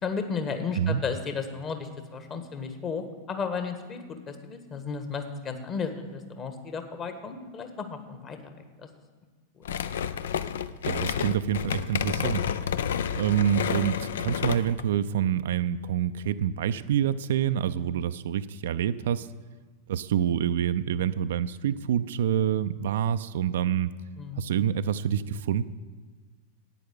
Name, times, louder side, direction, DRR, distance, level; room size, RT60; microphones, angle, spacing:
voice 1, 0.0-8.9 9.6-9.7 24.2-24.4, left 5 dB, 30° left, 7 dB, 1.5 m, -34 dB
sound 1, 9.6-14.8, left 8 dB, 60° left, 0.5 m, -30 dB
voice 2, 10.9-12.5 13.1-19.3 19.9-23.9 24.4-25.7, right 9 dB, 60° right, 12 dB, 0.4 m, -27 dB
11.0 x 9.3 x 7.8 m, 1.4 s
figure-of-eight pair, 90°, 0 cm